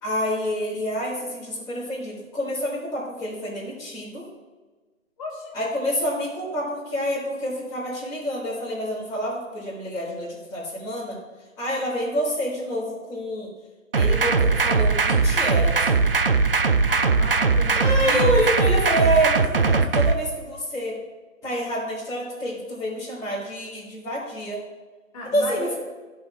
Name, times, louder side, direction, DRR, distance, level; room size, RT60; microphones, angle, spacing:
voice 1, 0.0-4.3 5.5-11.2 11.6-13.5 14.0-16.0 17.7-21.0 21.4-24.6 25.3-25.7, equal, 5° left, -15 dB, 2.0 m, -27 dB
voice 2, 5.2-5.5 16.9-18.3 25.1-25.7, left 1 dB, 30° left, -5 dB, 2.7 m, -34 dB
sound 1, 13.9-20.1, right 4 dB, 45° right, 0.4 m, -20 dB
14.5 x 5.5 x 2.5 m, 1.3 s
figure-of-eight pair, 145°, 40 cm